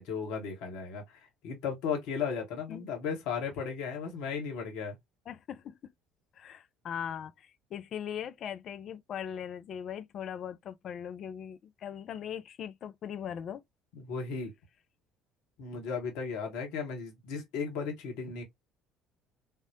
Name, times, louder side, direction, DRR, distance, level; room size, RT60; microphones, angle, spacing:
voice 1, 0.0-5.0 13.9-14.5 15.6-18.4, left 6 dB, 65° left, 0.9 m, -35 dB
voice 2, 5.3-5.9 6.4-13.6, left 9 dB, 50° left, 0.3 m, -40 dB
3.5 x 2.0 x 2.6 m
figure-of-eight pair, 55°, 0 cm